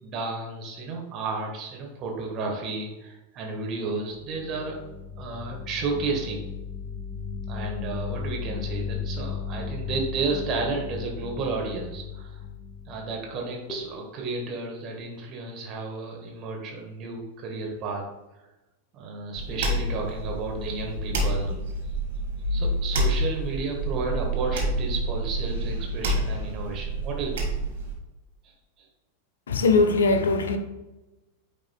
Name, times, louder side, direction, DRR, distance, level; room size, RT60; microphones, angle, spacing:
voice 1, 0.0-4.7 5.2-6.4 7.5-12.4 12.9-18.0 18.9-21.6 22.5-27.5 28.4-28.9, right 3 dB, 35° right, 1.5 m, -32 dB
sound 1, 4.1-13.4 13.7-14.0, left 6 dB, 25° left, 1.6 m, -35 dB
sound 2, 19.4-27.9, right 1 dB, 60° right, 1.6 m, -28 dB
voice 2, 29.5-30.6, left 3 dB, 65° left, 0.7 m, -20 dB
9.1 x 5.3 x 2.3 m
figure-of-eight pair, 90°, 0 cm